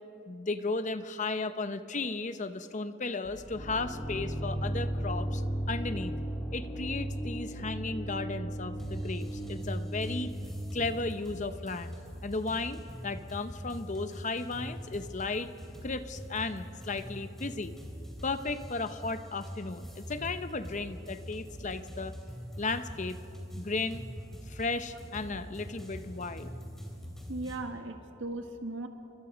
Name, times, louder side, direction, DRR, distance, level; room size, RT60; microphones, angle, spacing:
voice 1, 0.3-5.4 5.7-6.2 6.5-10.3 10.7-12.0 12.2-15.5 15.8-17.7 18.2-22.2 22.6-23.2 23.6-24.0 24.5-26.5, left 3 dB, 35° left, 11 dB, 0.8 m, -35 dB
sound 1, 3.2-11.1, right 1 dB, 20° left, 3.6 m, -35 dB
sound 2, 8.8-27.6, equal, ahead, 3.0 m, -44 dB
voice 2, 27.3-28.9, right 2 dB, 65° right, 5 dB, 1.8 m, -37 dB
28.0 x 24.5 x 5.1 m, 2.8 s
head